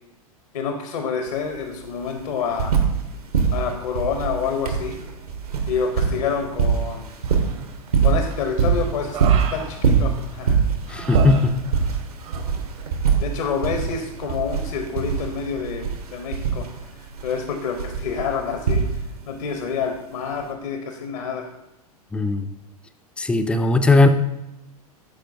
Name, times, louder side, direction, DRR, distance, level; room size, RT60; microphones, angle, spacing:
voice 1, 0.5-2.8 3.5-5.0 5.7-7.0 8.0-9.2 9.5-10.6 13.2-16.7 17.2-18.8 19.3-21.5, left 6 dB, 65° left, 5 dB, 0.8 m, -27 dB
sound 1, 1.3-1.4 1.6-3.1 3.3-19.3 20.4-20.5, right 6 dB, 75° right, 1.1 m, -23 dB
Human voice, 7.3-7.9 8.3-10.4 10.9-12.0 12.2-12.5, right 7 dB, 55° right, 0.9 m, -34 dB
voice 2, 10.9-11.5 22.1-22.5 23.2-24.1, left 3 dB, 5° left, 8 dB, 0.3 m, -18 dB
11.5 x 4.4 x 2.6 m, 0.93 s
figure-of-eight pair, 95°, 20 cm